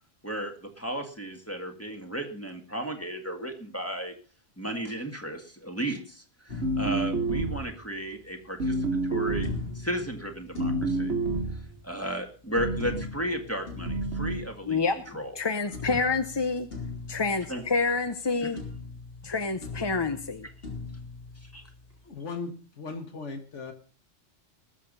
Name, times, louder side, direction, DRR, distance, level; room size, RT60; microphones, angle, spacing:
voice 1, 0.2-4.1 4.6-9.5 9.7-11.1 11.5-14.8 15.1-15.3 17.5-17.6 18.4-18.5 21.4-21.6, right 1 dB, 10° left, 2 dB, 2.0 m, -34 dB
sound 1, 6.5-8.0 9.4-12.0 12.8-15.4 15.7-18.3 18.6-22.0, left 4 dB, 55° left, 3.7 m, -41 dB
sound 2, 6.6-7.8 8.6-9.7 10.6-11.7 12.6-13.1 13.9-14.4, right 2 dB, 70° right, 1.7 m, -29 dB
voice 2, 14.7-16.7 17.1-18.6 19.2-20.5, left 4 dB, 25° left, 9 dB, 0.6 m, -28 dB
voice 3, 22.0-23.7, left 4 dB, 85° left, 7 dB, 1.9 m, -37 dB
20.5 x 7.1 x 5.4 m, 0.38 s
omnidirectional pair, 1.2 m